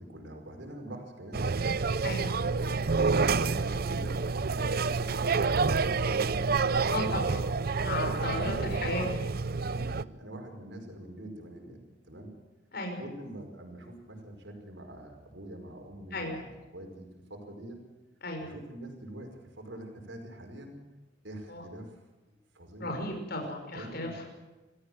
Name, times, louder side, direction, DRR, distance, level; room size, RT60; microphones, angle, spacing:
voice 1, 0.0-1.5 2.1-2.9 3.3-7.3 8.0-9.1 9.6-12.3 13.0-17.8 18.4-20.8 21.2-21.9 22.5-23.0 23.7-24.2, right 1 dB, 70° right, 3 dB, 5.2 m, -44 dB
sound 1, 1.3-10.0, right 4 dB, 50° right, 0.6 m, -28 dB
voice 2, 6.9-7.4 7.8-9.1 12.7-13.0 16.1-16.4 18.2-18.5 21.5-21.6 22.8-24.3, left 1 dB, 55° left, 2 dB, 5.5 m, -34 dB
27.0 x 15.5 x 7.7 m, 1.1 s
head